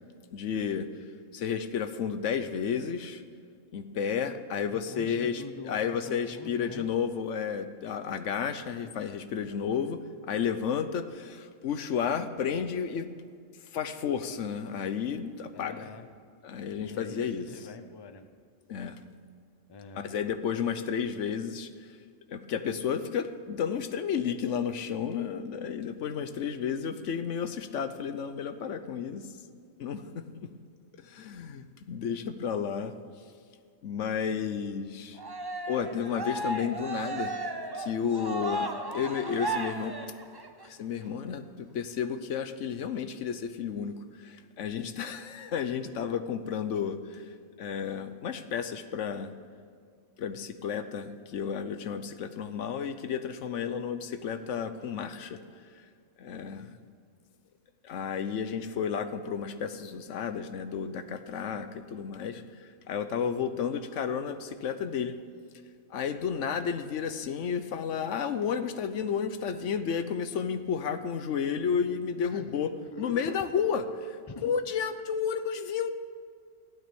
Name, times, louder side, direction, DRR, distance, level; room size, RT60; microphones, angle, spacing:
voice 1, 0.3-0.9 1.3-3.2 3.7-10.0 10.3-13.1 13.7-15.9 16.4-17.5 18.7-18.9 19.9-21.7 22.3-29.3 29.8-30.5 31.0-32.9 33.8-35.2 35.7-37.4 37.7-39.9 40.6-47.2 47.6-49.3 50.2-55.4 56.2-56.8 57.8-65.1 65.9-72.7 73.0-73.8 74.1-75.9, left 7 dB, 90° left, 10 dB, 1.1 m, -32 dB
voice 2, 4.7-6.9 15.5-16.1 16.7-18.3 19.7-20.1 72.2-73.5 74.3-74.5, left 4 dB, 25° left, 8 dB, 0.7 m, -44 dB
Cheering, 35.2-40.7, right 2 dB, 20° right, 0.8 m, -35 dB
15.0 x 9.2 x 7.0 m, 2.2 s
omnidirectional pair, 1.2 m